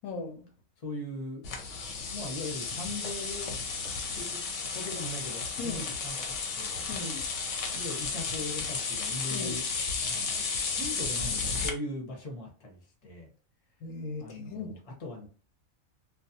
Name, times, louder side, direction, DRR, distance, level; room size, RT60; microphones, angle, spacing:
voice 1, 0.0-0.5 5.6-5.8 6.9-7.3 9.3-9.6 13.8-14.7, left 3 dB, 90° left, 1.1 m, -38 dB
voice 2, 0.8-1.5 2.1-6.9 7.7-9.7 10.0-13.3 14.2-15.3, left 2 dB, 35° left, 0.7 m, -40 dB
sound 1, 1.4-11.7, left 4 dB, 65° left, 0.9 m, -33 dB
2.4 x 2.2 x 2.7 m
omnidirectional pair, 1.5 m